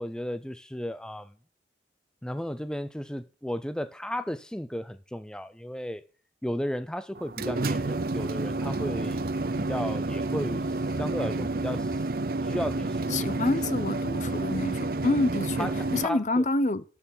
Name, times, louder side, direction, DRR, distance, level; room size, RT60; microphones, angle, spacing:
voice 1, 0.0-1.3 2.2-6.0 6.4-9.2 9.6-12.0 12.4-13.3 15.6-16.4, equal, 5° left, 0.5 m, -34 dB
sound 1, 7.1-16.1, right 2 dB, 55° right, 0.6 m, -30 dB
voice 2, 13.1-16.8, left 1 dB, 40° left, 0.8 m, -27 dB
13.0 x 6.3 x 8.9 m
head